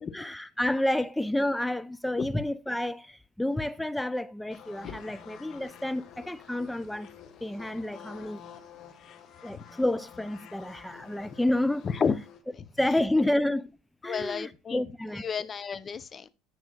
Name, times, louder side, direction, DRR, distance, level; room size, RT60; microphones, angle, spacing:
voice 1, 0.1-7.1 7.4-8.4 9.4-11.9 12.8-13.8 14.0-15.3, left 1 dB, 5° left, 0.4 m, -29 dB
sound 1, 4.5-12.4, left 7 dB, 50° left, 1.5 m, -49 dB
voice 2, 11.8-12.2 12.5-12.6 14.0-14.8 15.2-16.3, left 6 dB, 30° left, 0.7 m, -31 dB
14.0 x 6.1 x 2.4 m
supercardioid pair, 100°, 0 cm